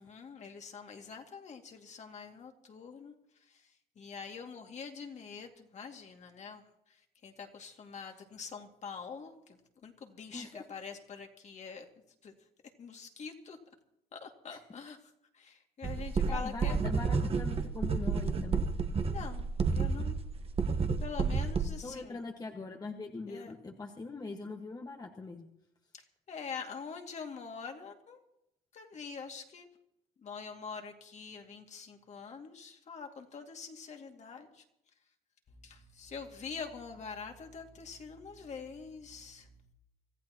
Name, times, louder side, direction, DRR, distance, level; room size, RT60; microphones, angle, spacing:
voice 1, 0.0-6.6 6.9-11.9 12.2-12.3 12.8-13.6 14.1-15.0 15.3-16.8 19.0-20.2 21.0-22.2 23.3-23.5 25.9-28.2 28.7-29.7 30.2-34.6 35.6-39.5, left 5 dB, 45° left, 3 dB, 2.3 m, -45 dB
voice 2, 10.3-10.6 14.5-14.6 16.3-18.6 21.8-25.5, left 3 dB, 20° left, 2 dB, 1.6 m, -42 dB
sound 1, 15.8-21.7, right 4 dB, 35° right, 1.4 m, -30 dB
25.5 x 14.5 x 3.0 m, 0.82 s
cardioid pair, 110°, 17 cm